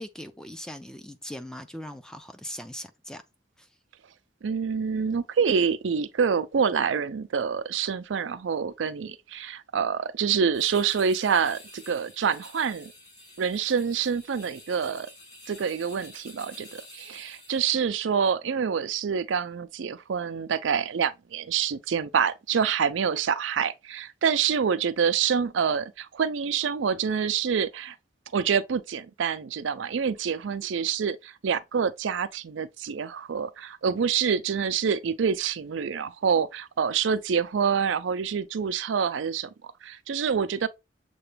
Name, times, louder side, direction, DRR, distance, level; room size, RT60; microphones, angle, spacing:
voice 1, 0.0-3.2 3.6-3.7, equal, 5° left, 0.4 m, -40 dB
voice 2, 4.4-12.9 13.4-15.1 15.5-28.0 28.3-40.7, right 6 dB, 90° right, 0.4 m, -27 dB
sound 1, 10.5-17.8, left 2 dB, 35° left, 2.9 m, -49 dB
6.8 x 2.3 x 3.3 m
head